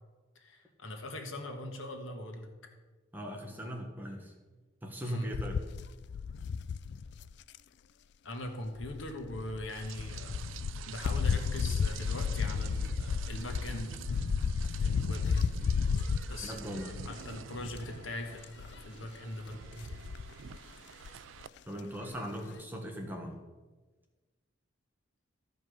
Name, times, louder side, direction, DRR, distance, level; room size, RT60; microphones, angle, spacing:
voice 1, 0.3-2.5 5.0-5.3 8.2-10.3 10.9-14.1 14.8-15.4 16.3-16.5 17.0-20.0, left 1 dB, 75° left, 4 dB, 1.5 m, -41 dB
voice 2, 3.1-4.3 4.8-5.6 16.4-16.9 21.7-23.4, equal, 10° right, 2 dB, 1.3 m, -39 dB
sound 1, 5.3-7.6 8.8-17.4 17.8-18.1 18.4-18.9 19.7-20.6 21.1-21.2 21.4-21.5, left 5 dB, 55° left, 0.3 m, -33 dB
Rain, 9.7-21.5, right 7 dB, 70° right, 0.4 m, -47 dB
13.5 x 5.4 x 6.4 m, 1.3 s
head